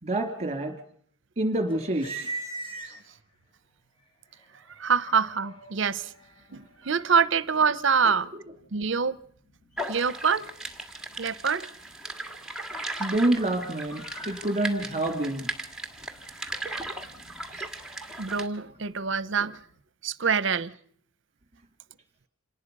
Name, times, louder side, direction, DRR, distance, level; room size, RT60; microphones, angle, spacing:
voice 1, 0.0-0.7 1.4-2.3 2.8-3.0 9.9-10.0 12.9-15.5 17.5-17.6, right 1 dB, 30° right, 3.1 m, -27 dB
sound 1, 1.7-3.4 4.0-19.8, right 2 dB, 25° left, 4.6 m, -46 dB
voice 2, 4.8-6.1 6.5-8.3 8.7-9.2 9.9-10.5 11.2-11.7 18.2-19.6 20.0-20.7, right 6 dB, 60° right, 0.8 m, -25 dB
sound 2, 9.8-18.5, right 2 dB, 5° right, 1.8 m, -37 dB
27.0 x 19.0 x 5.5 m
head